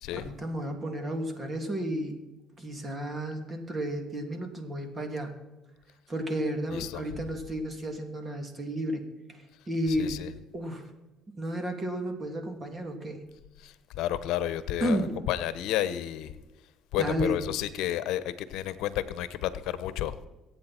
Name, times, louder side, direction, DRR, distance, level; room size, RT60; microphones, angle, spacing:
voice 1, 0.1-2.2 2.6-5.3 6.1-10.2 10.5-10.9 11.4-13.2 14.8-15.1 17.0-17.4, right 1 dB, 30° right, 5 dB, 2.9 m, -32 dB
voice 2, 6.7-7.0 9.9-10.3 13.6-15.0 15.3-16.3 16.9-20.1, left 12 dB, 80° left, 14 dB, 0.9 m, -31 dB
23.5 x 8.7 x 4.4 m, 1.1 s
cardioid pair, 100°, 0 cm